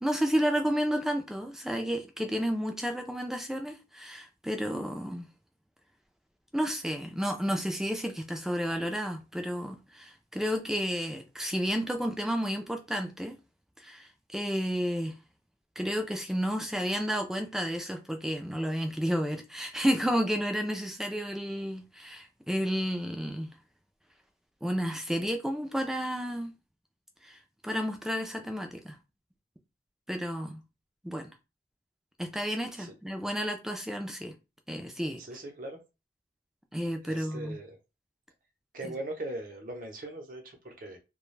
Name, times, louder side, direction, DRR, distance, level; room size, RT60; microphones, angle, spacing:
voice 1, 0.0-5.3 6.5-13.4 13.8-15.1 15.8-23.5 24.6-26.5 27.2-27.4 27.6-29.0 30.1-30.6 31.0-31.3 32.2-34.3 34.7-35.2 36.7-37.6, equal, 5° right, 0.3 m, -31 dB
voice 2, 35.2-35.8 37.0-37.7 38.7-41.0, right 1 dB, 50° right, 0.7 m, -40 dB
2.4 x 2.2 x 3.1 m
head